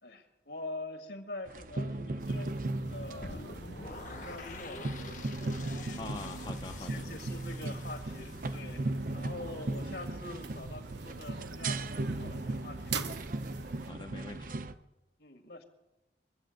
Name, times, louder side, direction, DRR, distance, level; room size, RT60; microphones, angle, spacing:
voice 1, 0.0-3.5 4.0-5.0 5.6-6.4 6.8-13.0 15.2-15.6, left 2 dB, 70° left, 5 dB, 1.9 m, -45 dB
sound 1, 1.5-14.7, right 2 dB, 50° right, 0.6 m, -37 dB
sound 2, 2.2-13.9, right 6 dB, 80° right, 0.9 m, -46 dB
sound 3, 3.2-9.3, left 3 dB, 45° left, 0.9 m, -47 dB
voice 2, 6.0-7.1 13.8-14.6, left 3 dB, 25° left, 4 dB, 0.5 m, -43 dB
23.0 x 7.8 x 7.8 m, 1.0 s
head